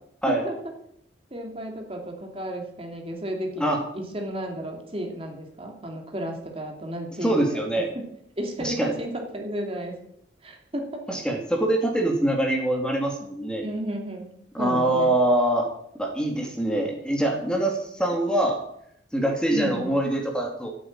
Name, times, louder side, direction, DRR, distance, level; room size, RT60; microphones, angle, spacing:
voice 1, 0.3-0.6 1.3-7.6 7.9-8.0 8.4-10.0 10.4-11.2 13.6-15.1 19.5-19.9, right 1 dB, 30° right, 2 dB, 2.6 m, -33 dB
voice 2, 7.2-7.9 8.6-8.9 11.1-13.6 14.5-15.7 16.0-18.6 19.1-20.7, right 1 dB, 5° left, 2 dB, 2.4 m, -24 dB
14.0 x 8.8 x 8.8 m, 0.73 s
head